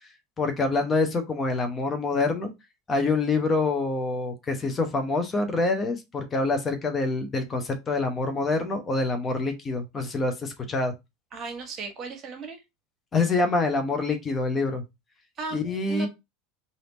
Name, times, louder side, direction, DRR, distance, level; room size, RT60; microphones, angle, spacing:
voice 1, 0.4-2.5 2.9-10.9 13.1-14.8 15.5-16.1, left 3 dB, 25° left, 0.9 m, -26 dB
voice 2, 11.3-12.6 15.4-16.1, right 4 dB, 40° right, 1.5 m, -36 dB
3.4 x 2.8 x 3.9 m
hypercardioid pair, 90°, 0 cm